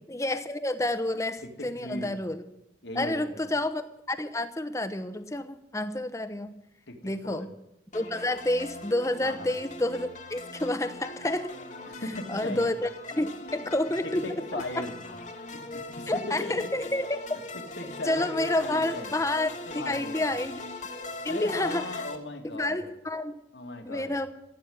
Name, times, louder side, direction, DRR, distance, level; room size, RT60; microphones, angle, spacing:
voice 1, 0.1-2.4 3.0-6.5 7.0-7.5 7.9-11.5 12.3-14.2 14.5-14.6 16.1-17.4 18.1-19.5 19.8-20.6 21.2-22.0 22.5-23.4 23.8-24.3, left 1 dB, 15° left, 10 dB, 1.0 m, -29 dB
voice 2, 1.6-2.1 2.8-3.5 6.9-7.0 7.2-7.5 9.2-9.5 11.9-12.7 13.4-13.7 14.0-15.0 15.5-16.7 17.5-19.1 19.7-20.4 21.2-22.8 23.5-24.1, left 2 dB, 75° left, 4 dB, 2.4 m, -37 dB
sound 1, 7.9-22.2, left 2 dB, 40° left, 1.6 m, -41 dB
16.0 x 9.3 x 9.5 m, 0.88 s
head